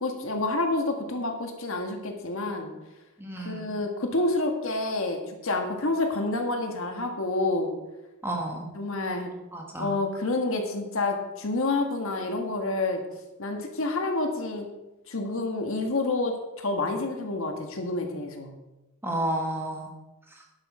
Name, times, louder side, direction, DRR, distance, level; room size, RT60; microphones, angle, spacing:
voice 1, 0.0-2.7 3.4-7.7 8.7-9.3 9.8-13.0 13.4-14.7 15.1-18.5, left 2 dB, 60° left, 4 dB, 1.6 m, -28 dB
voice 2, 3.2-3.7 8.2-8.7 9.5-10.0 19.0-19.9 20.3-20.4, right 1 dB, 10° right, 0 dB, 1.7 m, -31 dB
11.0 x 8.1 x 4.8 m, 1.0 s
head